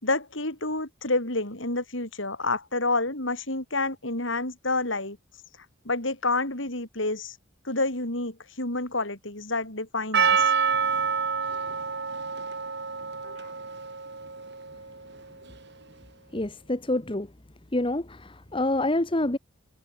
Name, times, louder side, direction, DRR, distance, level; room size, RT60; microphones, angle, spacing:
voice 1, 0.0-5.2 5.9-7.4 7.7-10.5 13.2-13.5, left 2 dB, 60° left, 5.5 m, -29 dB
Percussion, 10.1-15.1, right 6 dB, 55° right, 3.1 m, -27 dB
voice 2, 16.3-17.3 17.7-19.4, left 1 dB, 25° left, 1.3 m, -27 dB
head